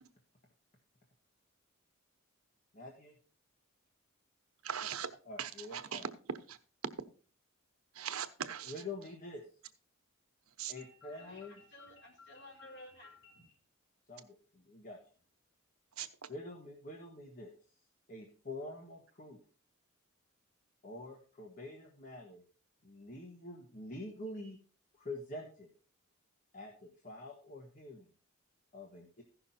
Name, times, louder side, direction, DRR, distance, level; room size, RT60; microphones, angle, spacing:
voice 1, 2.7-3.1 5.2-6.1 8.7-9.4 10.7-11.6 14.1-15.0 16.3-17.5 18.1-19.4 20.8-22.4 22.8-24.6 24.9-25.7 26.5-28.1 28.7-29.2, left 2 dB, 40° left, 1.4 m, -46 dB
voice 2, 4.6-5.1 5.4-6.1 6.5-6.6 8.0-8.7 10.6-10.7 16.0-16.1, right 8 dB, 85° right, 1.0 m, -39 dB
voice 3, 10.7-13.6, left 2 dB, 55° left, 4.3 m, -54 dB
15.5 x 6.0 x 4.2 m
head